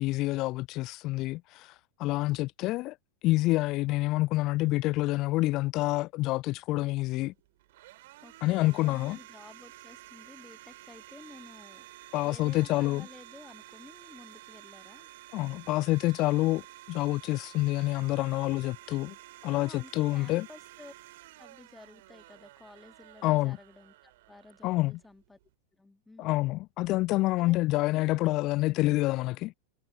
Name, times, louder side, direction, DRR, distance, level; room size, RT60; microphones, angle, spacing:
voice 1, 0.0-1.7 2.0-2.9 3.2-7.3 8.4-9.2 12.1-13.1 15.3-16.6 16.9-19.2 19.4-20.5 23.2-23.6 24.6-25.0 26.2-29.5, left 19 dB, 40° left, 0.4 m, -27 dB
Domestic sounds home sounds, 6.7-25.5, right 17 dB, 55° right, 5.9 m, -51 dB
voice 2, 8.2-11.9 12.2-15.1 19.5-20.9 21.4-25.4 25.7-26.4 27.4-27.5 28.1-28.2, left 2 dB, 5° left, 1.6 m, -52 dB
figure-of-eight pair, 90°, 0 cm